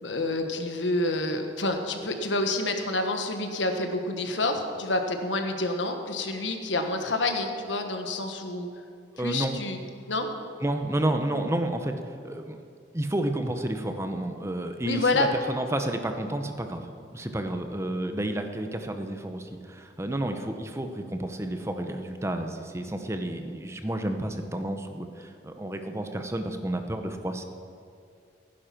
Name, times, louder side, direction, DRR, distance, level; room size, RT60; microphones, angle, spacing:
voice 1, 0.0-8.7 9.2-9.8 10.1-10.3 14.8-15.4, left 2 dB, 90° left, 6 dB, 1.4 m, -28 dB
voice 2, 9.2-9.6 10.6-12.6 12.9-27.4, right 1 dB, 15° right, 6 dB, 0.8 m, -31 dB
16.0 x 10.5 x 5.9 m, 2.4 s
head